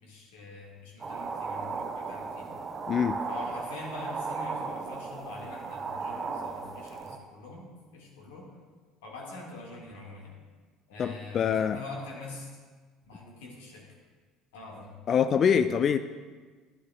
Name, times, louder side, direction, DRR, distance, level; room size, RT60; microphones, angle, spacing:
voice 1, 0.0-2.5 3.2-8.5 9.0-10.3 10.9-12.5 13.1-13.8 14.5-14.9, left 3 dB, 70° left, -1 dB, 1.7 m, -44 dB
sound 1, 1.0-7.2, right 4 dB, 30° right, 0.7 m, -36 dB
voice 2, 2.9-3.2 11.0-11.8 15.1-16.0, left 7 dB, 40° left, 11 dB, 0.3 m, -24 dB
11.5 x 10.5 x 2.3 m, 1.4 s
figure-of-eight pair, 60°, 0 cm